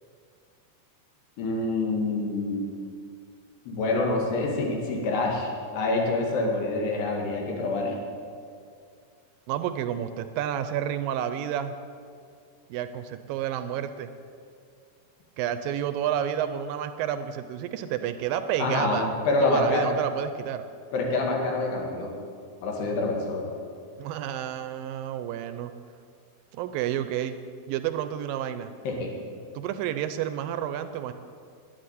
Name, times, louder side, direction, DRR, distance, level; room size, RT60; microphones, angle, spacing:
voice 1, 1.4-2.7 3.7-7.9 18.6-19.9 20.9-22.1 22.6-23.5 28.8-29.1, left 2 dB, 85° left, -1 dB, 4.3 m, -26 dB
voice 2, 9.5-11.7 12.7-14.1 15.4-19.1 19.4-20.7 24.0-25.7 26.5-27.4 27.7-28.7 29.6-31.1, right 10 dB, 80° right, 10 dB, 2.1 m, -30 dB
10.5 x 10.5 x 9.8 m, 2.3 s
omnidirectional pair, 4.6 m